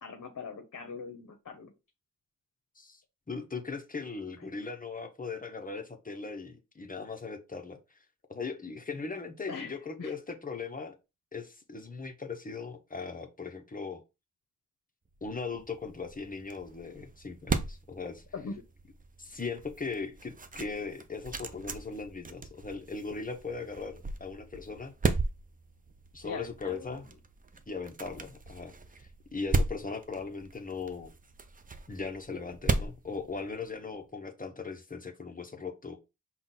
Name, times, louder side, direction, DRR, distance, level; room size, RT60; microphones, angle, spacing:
voice 1, 0.0-1.7 9.5-10.1 18.3-18.5 26.2-26.9, left 5 dB, 60° left, 0.8 m, -41 dB
voice 2, 3.3-7.8 8.3-10.9 11.3-14.0 15.2-18.2 19.2-24.9 26.1-27.1 27.7-31.1 31.9-36.0, left 4 dB, 25° left, 0.7 m, -39 dB
sound 1, 15.2-33.9, right 3 dB, 25° right, 0.4 m, -37 dB
5.6 x 2.2 x 4.0 m
wide cardioid pair, 125°, 32 cm